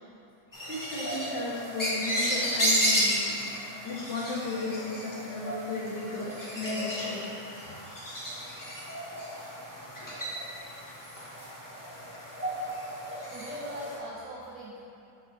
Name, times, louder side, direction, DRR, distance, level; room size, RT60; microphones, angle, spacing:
sound 1, 0.5-14.0, equal, 30° left, 0.3 m, -33 dB
voice 1, 0.7-3.5 3.8-7.3, left 3 dB, 65° left, -5 dB, 1.7 m, -35 dB
voice 2, 13.3-14.8, right 1 dB, 80° right, -4 dB, 0.7 m, -42 dB
4.9 x 4.6 x 4.1 m, 2.7 s
omnidirectional pair, 2.2 m